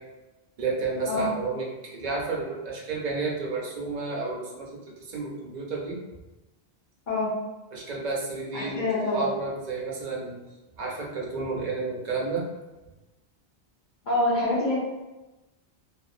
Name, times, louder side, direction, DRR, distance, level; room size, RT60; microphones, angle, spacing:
voice 1, 0.6-4.8 5.1-6.0 7.7-8.8 9.1-10.4 10.8-12.4, right 3 dB, 50° right, -2 dB, 0.6 m, -31 dB
voice 2, 8.5-9.2 14.0-14.8, left 2 dB, 50° left, -10 dB, 0.8 m, -25 dB
2.6 x 2.6 x 2.4 m, 1.1 s
omnidirectional pair, 1.1 m